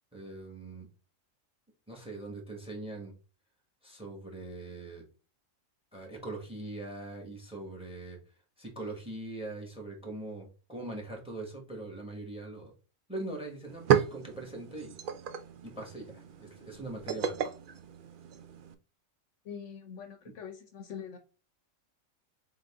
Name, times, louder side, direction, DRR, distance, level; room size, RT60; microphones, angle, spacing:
voice 1, 0.1-0.9 1.9-3.1 3.8-5.0 5.9-8.2 8.6-12.7 13.1-15.0 15.6-17.5, right 2 dB, 5° right, 2 dB, 1.2 m, -41 dB
sound 1, 13.2-13.3 13.6-18.7, right 9 dB, 80° right, 0.4 m, -33 dB
voice 2, 19.4-21.2, left 7 dB, 65° left, 6 dB, 0.9 m, -43 dB
3.8 x 3.6 x 3.5 m, 0.34 s
omnidirectional pair, 1.4 m